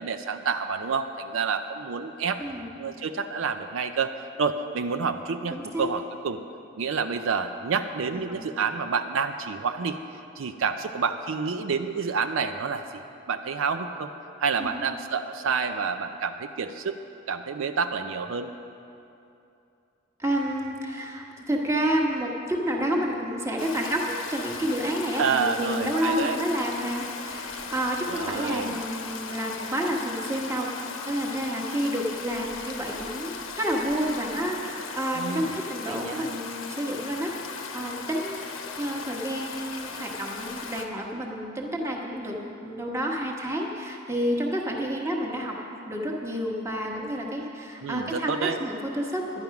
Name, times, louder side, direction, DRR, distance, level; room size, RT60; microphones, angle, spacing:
voice 1, 0.0-2.4 2.7-4.1 4.4-6.4 6.8-10.0 10.4-13.0 13.3-14.1 14.4-17.0 17.3-18.5 25.1-26.4 28.1-28.7 35.2-35.5 35.9-36.4 47.8-48.6, right 5 dB, 75° right, 8 dB, 0.5 m, -28 dB
voice 2, 2.4-2.7 5.5-5.9 8.1-8.4 14.6-14.8 20.2-38.4 38.8-45.6 45.8-49.4, equal, 15° right, -1 dB, 1.2 m, -29 dB
Stream, 23.6-40.9, left 5 dB, 80° left, 1.0 m, -38 dB
11.0 x 10.5 x 5.8 m, 2.7 s
head